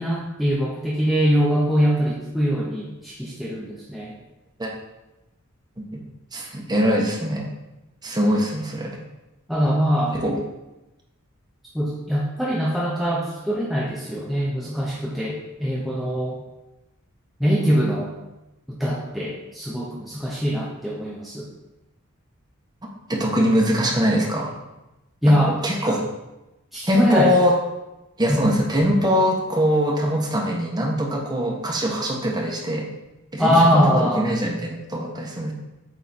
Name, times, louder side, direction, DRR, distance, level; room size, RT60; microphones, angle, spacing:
voice 1, 0.0-4.2 9.5-10.2 11.7-16.4 17.4-18.1 18.7-21.5 25.2-25.6 26.7-27.3 28.3-28.4 33.4-34.3, equal, ahead, -5 dB, 0.8 m, -22 dB
voice 2, 6.3-7.5 8.0-8.9 10.1-10.4 23.1-24.5 25.6-26.0 26.9-27.5 28.2-32.9 33.3-35.5, equal, 20° right, -1 dB, 1.2 m, -22 dB
8.0 x 3.7 x 4.2 m, 0.98 s
head